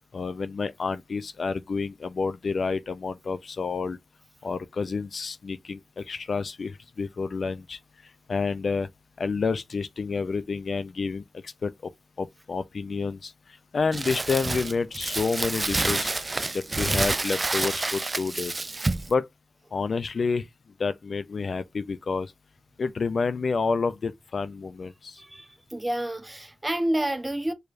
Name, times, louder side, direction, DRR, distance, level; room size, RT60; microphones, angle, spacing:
voice 1, 0.1-4.0 4.4-7.8 8.3-8.9 9.2-11.9 12.2-13.3 13.7-16.1 16.5-18.6 19.1-19.3 19.7-20.5 20.8-22.3 22.8-25.2, left 4 dB, 75° left, 0.4 m, -29 dB
Crumpling crinkling, 13.9-19.1, right 2 dB, 40° right, 0.3 m, -28 dB
voice 2, 25.2-27.5, right 1 dB, 20° right, 0.8 m, -29 dB
4.7 x 3.2 x 2.5 m
cardioid pair, 50°, 0 cm